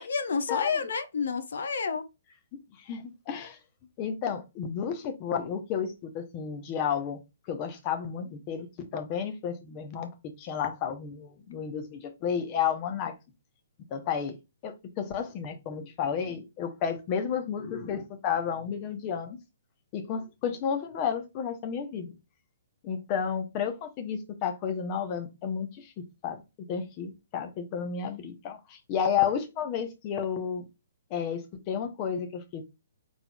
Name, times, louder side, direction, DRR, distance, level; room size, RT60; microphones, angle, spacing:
voice 1, 0.0-2.0, left 5 dB, 60° left, 0.7 m, -29 dB
voice 2, 2.9-3.6 4.0-7.2 7.5-10.1 10.4-13.1 13.9-14.3 14.6-19.4 19.9-22.1 22.8-26.4 26.7-30.6 31.1-32.6, left 7 dB, 30° left, 0.9 m, -32 dB
4.4 x 4.0 x 2.4 m
figure-of-eight pair, 125°, 0 cm